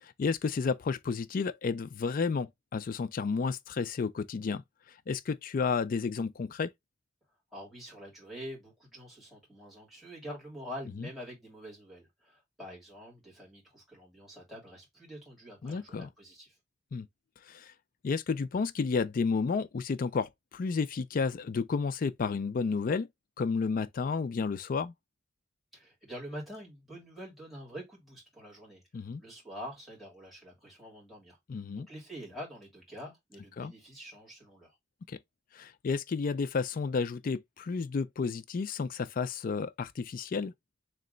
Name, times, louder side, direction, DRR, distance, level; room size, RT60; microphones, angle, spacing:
voice 1, 0.0-4.6 5.1-6.7 11.0-11.1 15.6-16.1 16.9-17.1 17.5-17.7 18.0-23.1 23.4-24.9 28.9-29.2 31.5-31.9 33.6-33.7 35.1-35.2 35.5-40.5, left 5 dB, 50° left, 0.4 m, -31 dB
voice 2, 7.5-16.6 25.7-31.4 31.7-34.8, equal, ahead, 2.3 m, -46 dB
3.2 x 3.0 x 3.8 m
head